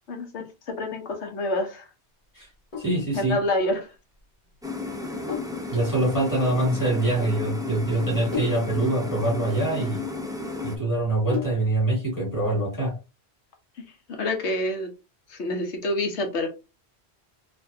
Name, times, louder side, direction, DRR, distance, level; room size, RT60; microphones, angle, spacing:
voice 1, 0.1-1.9 3.1-3.9 14.1-14.9 15.3-16.5, left 1 dB, 85° left, 4 dB, 1.3 m, -27 dB
Sink (filling or washing), 2.4-11.9, left 6 dB, 50° left, 1.5 m, -39 dB
voice 2, 2.8-3.4 5.7-10.0 10.6-12.9, right 2 dB, 15° left, -2 dB, 2.2 m, -24 dB
sound 1, 4.6-10.8, left 3 dB, 5° right, 0.5 m, -33 dB
4.3 x 2.7 x 2.7 m, 0.29 s
omnidirectional pair, 1.1 m